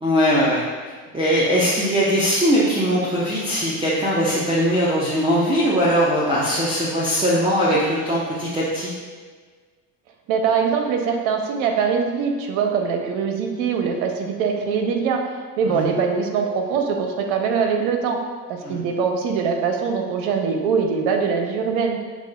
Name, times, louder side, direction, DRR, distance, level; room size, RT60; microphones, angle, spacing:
voice 1, 0.0-0.6 1.1-8.9 15.7-15.9 18.6-18.8, equal, 10° right, -8 dB, 0.7 m, -20 dB
voice 2, 10.3-15.3 15.6-18.2 18.5-22.0, right 6 dB, 70° right, 3 dB, 0.8 m, -22 dB
6.9 x 2.5 x 2.2 m, 1.5 s
hypercardioid pair, 75°, 49 cm